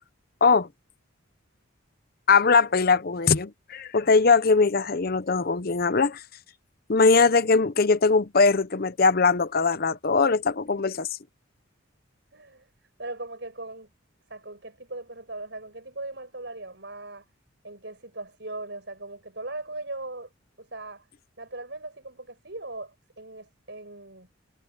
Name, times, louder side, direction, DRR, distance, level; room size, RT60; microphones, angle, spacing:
voice 1, 2.3-6.2 6.9-11.1, left 4 dB, 45° left, 0.7 m, -21 dB
voice 2, 12.3-12.7 13.0-13.9 14.3-17.3 17.6-20.3 20.6-21.1 21.4-24.3, right 2 dB, 55° right, 7.7 m, -39 dB
head